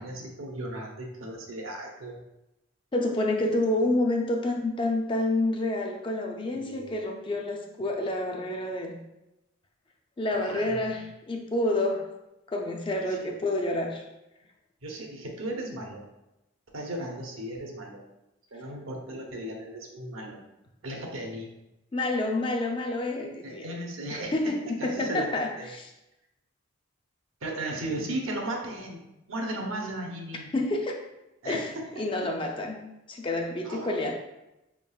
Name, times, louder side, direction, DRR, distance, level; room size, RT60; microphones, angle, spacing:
voice 1, 0.0-2.2 6.5-7.0 10.3-10.9 13.0-13.2 14.8-16.0 16.7-18.0 18.5-20.4 20.8-21.5 23.4-24.3 24.8-25.3 25.6-25.7 27.4-29.0 29.3-30.5 31.4-32.0 33.6-33.9, right 1 dB, 80° right, 1 dB, 0.8 m, -36 dB
voice 2, 2.9-9.0 10.2-12.1 12.5-14.0 21.9-23.7 24.1-25.9 30.5-31.1 31.4-34.1, left 2 dB, 25° left, 2 dB, 0.3 m, -29 dB
4.5 x 3.6 x 2.3 m, 0.92 s
head